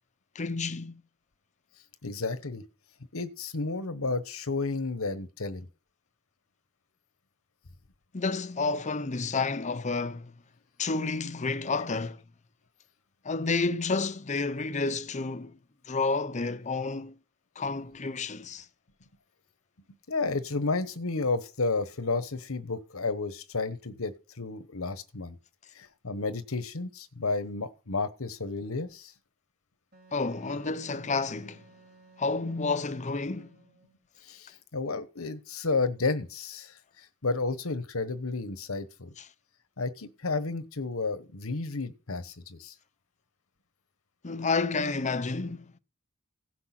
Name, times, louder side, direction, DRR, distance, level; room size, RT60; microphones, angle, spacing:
voice 1, 0.3-1.0 8.1-10.3 10.8-12.2 13.2-15.6 15.9-17.1 17.6-18.7 30.1-31.6 32.2-33.6 39.2-39.3 44.2-45.7, left 3 dB, 35° left, 0.7 m, -30 dB
voice 2, 2.0-2.6 3.1-5.7 20.1-25.4 25.7-29.1 34.2-39.1 39.8-42.7, left 3 dB, 85° left, 1.2 m, -32 dB
Wind instrument woodwind instrument, 29.9-34.0, right 3 dB, 50° right, 3.5 m, -57 dB
16.0 x 6.1 x 6.0 m
head